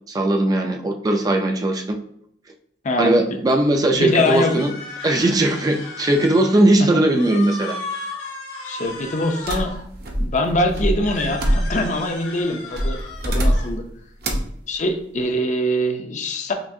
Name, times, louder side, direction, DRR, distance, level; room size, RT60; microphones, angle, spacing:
voice 1, 0.1-2.0 3.0-4.7 5.0-7.8, right 1 dB, 20° right, 4 dB, 0.3 m, -19 dB
voice 2, 2.8-3.4 3.9-4.5 6.8-6.9 8.6-9.7 10.2-13.0 13.2-13.8 14.7-16.5, left 1 dB, 40° left, 5 dB, 0.5 m, -23 dB
sound 1, 4.1-6.7 7.0-9.8 11.0-13.7, left 3 dB, 85° left, 1.4 m, -35 dB
sound 2, 9.5-12.0 12.7-13.8 14.2-14.6, equal, 55° right, 0.7 m, -23 dB
5.8 x 2.5 x 2.6 m, 0.68 s
head